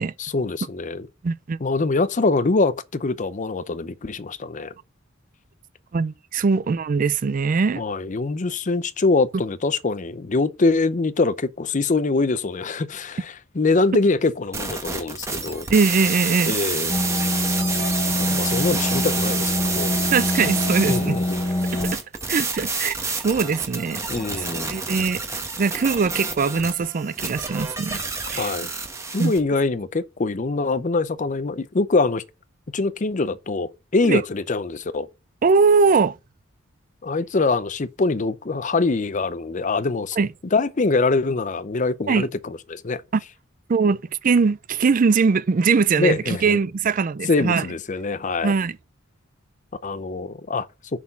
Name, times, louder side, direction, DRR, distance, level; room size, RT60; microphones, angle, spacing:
voice 1, 0.2-1.1 1.6-4.7 7.8-15.7 16.5-16.9 18.2-20.0 20.9-21.4 24.1-24.7 28.3-28.7 29.1-32.2 32.7-35.1 37.0-40.2 40.5-43.0 46.0-46.6 47.3-48.5 49.8-50.7, left 3 dB, 40° left, 0.6 m, -24 dB
voice 2, 1.2-1.6 5.9-7.8 15.7-16.6 18.3-18.4 20.1-21.2 21.7-22.0 22.3-24.0 24.3-25.2 25.6-28.0 28.3-28.5 29.2-29.3 34.1-34.2 35.4-36.2 40.2-40.3 42.1-42.3 43.1-43.2 43.7-47.7 48.4-48.7, right 5 dB, 40° right, 0.4 m, -21 dB
sound 1, 14.5-29.4, right 4 dB, 15° right, 1.2 m, -29 dB
sound 2, 16.9-21.9, left 1 dB, 20° left, 1.0 m, -25 dB
6.9 x 4.5 x 5.7 m
head